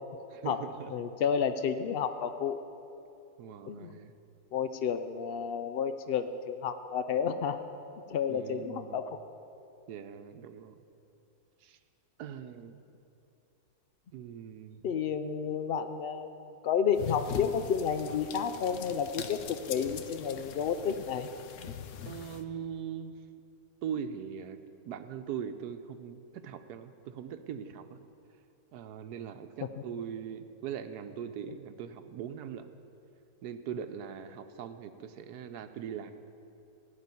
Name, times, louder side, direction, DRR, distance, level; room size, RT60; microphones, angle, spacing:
voice 1, 0.3-0.9 3.4-4.1 8.3-9.0 9.9-10.7 11.6-11.8 12.2-12.8 14.1-14.8 22.1-23.1 23.8-24.6 24.8-28.0 28.7-32.7 33.4-36.1, right 8 dB, 90° right, 9 dB, 1.3 m, -41 dB
voice 2, 0.9-2.6 3.7-3.9 4.5-7.6 8.1-9.2 14.8-21.3, left 7 dB, 85° left, 10 dB, 0.5 m, -31 dB
sound 1, 16.9-22.4, left 8 dB, 60° left, 0.9 m, -42 dB
16.0 x 5.4 x 9.7 m, 2.7 s
omnidirectional pair, 1.6 m